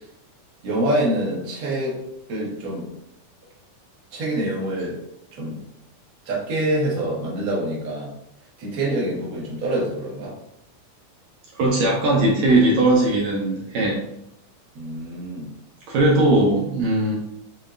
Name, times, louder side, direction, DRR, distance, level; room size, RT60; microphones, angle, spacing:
voice 1, 0.6-2.0 2.3-2.9 4.1-5.0 5.4-5.6 6.2-8.1 8.6-10.4 14.7-15.5, right 1 dB, 45° right, -5 dB, 1.2 m, -25 dB
voice 2, 11.6-14.0 15.9-17.2, right 2 dB, 70° right, -2 dB, 1.8 m, -19 dB
7.1 x 2.8 x 2.5 m, 0.77 s
omnidirectional pair, 3.7 m